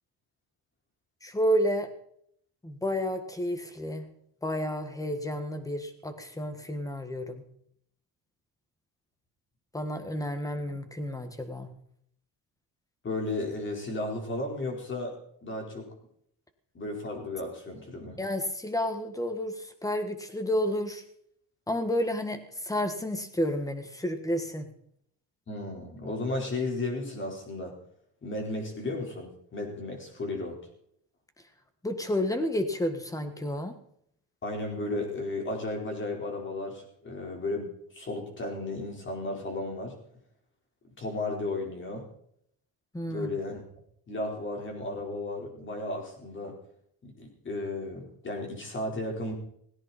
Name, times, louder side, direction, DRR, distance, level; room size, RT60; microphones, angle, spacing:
voice 1, 1.2-1.9 2.6-4.0 4.4-7.5 9.7-11.7 18.2-21.0 21.7-24.7 31.8-33.7 42.9-43.3, equal, 10° left, 8 dB, 1.6 m, -30 dB
voice 2, 13.0-15.1 15.4-15.9 16.7-18.2 25.5-27.7 28.2-30.6 34.4-40.0 40.8-42.1 43.0-43.6 44.1-46.5 47.0-49.3, left 2 dB, 30° left, 1 dB, 4.4 m, -34 dB
18.0 x 16.5 x 4.3 m, 0.70 s
cardioid pair, 155°, 40 cm